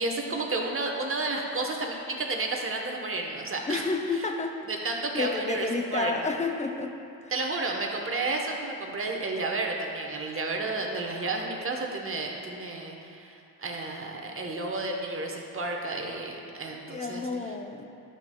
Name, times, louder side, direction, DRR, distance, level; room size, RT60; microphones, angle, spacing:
voice 1, 0.0-3.8 4.1-4.3 4.7-6.1 7.3-17.5, right 2 dB, 30° right, 2 dB, 1.1 m, -32 dB
voice 2, 3.7-7.0 7.2-7.3 16.9-17.9, left 3 dB, 15° left, 4 dB, 0.6 m, -31 dB
11.0 x 6.0 x 2.3 m, 2.6 s
supercardioid pair, 70°, 41 cm